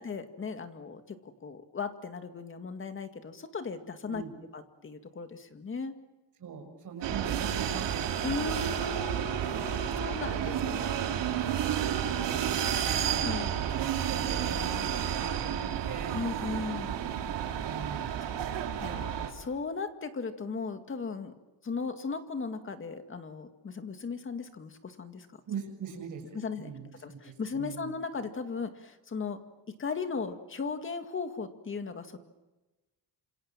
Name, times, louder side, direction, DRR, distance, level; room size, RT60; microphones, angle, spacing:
voice 1, 0.0-4.2 4.5-5.9 8.2-11.5 13.2-13.6 16.1-17.0 18.2-18.5 18.8-21.3 21.6-25.3 26.3-26.7 27.0-29.4 29.7-32.2, left 4 dB, 30° left, 8 dB, 2.1 m, -37 dB
voice 2, 6.4-8.1 10.2-10.7 11.6-16.2 17.6-18.2 25.5-27.9, right 6 dB, 45° right, 3 dB, 7.0 m, -42 dB
sound 1, 7.0-19.3, right 9 dB, 70° right, 3.6 m, -31 dB
28.5 x 27.0 x 7.5 m, 1.1 s
cardioid pair, 170°, 43 cm